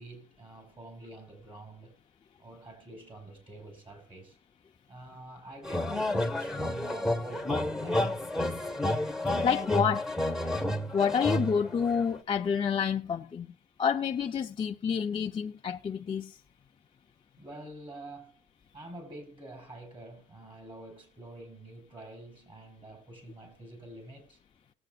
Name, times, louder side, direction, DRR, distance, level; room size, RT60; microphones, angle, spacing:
voice 1, 0.0-1.9 2.4-4.4 4.9-8.7 17.4-18.4 18.7-24.4, right 2 dB, 30° right, 5.4 m, -47 dB
sound 1, 5.6-12.2, left 1 dB, ahead, 1.5 m, -30 dB
voice 2, 9.4-10.1 10.9-13.5 13.8-16.4, left 7 dB, 30° left, 0.6 m, -28 dB
19.5 x 7.9 x 2.5 m
cardioid pair, 110°, 17 cm